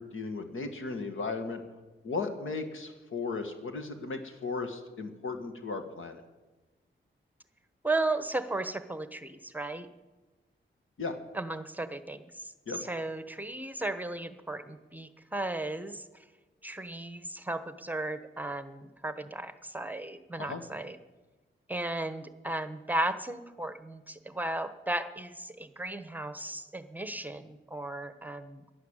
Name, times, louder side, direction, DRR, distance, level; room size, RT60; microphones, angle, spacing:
voice 1, 0.0-1.6 2.0-6.2 11.0-11.2 12.7-12.8 20.4-20.6, left 4 dB, 80° left, 7 dB, 1.8 m, -36 dB
voice 2, 7.8-9.9 11.3-12.5 12.8-16.0 16.6-21.0 21.7-28.6, right 2 dB, 10° right, 11 dB, 1.0 m, -35 dB
11.0 x 11.0 x 8.9 m, 1.2 s
cardioid pair, 80°, 21 cm